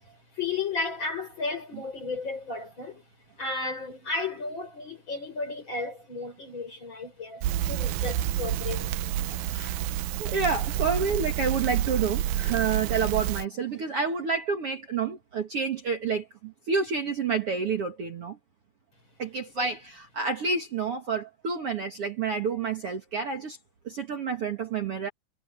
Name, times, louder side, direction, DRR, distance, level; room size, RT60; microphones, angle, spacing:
voice 1, 0.3-3.0 3.4-9.4 19.6-19.7, left 3 dB, 30° left, 6.3 m, -34 dB
Crackle, 7.4-13.5, right 12 dB, 80° right, 2.6 m, -29 dB
voice 2, 9.5-18.4 19.2-23.6 23.8-25.1, right 5 dB, 45° right, 2.3 m, -29 dB
omnidirectional pair, 4.1 m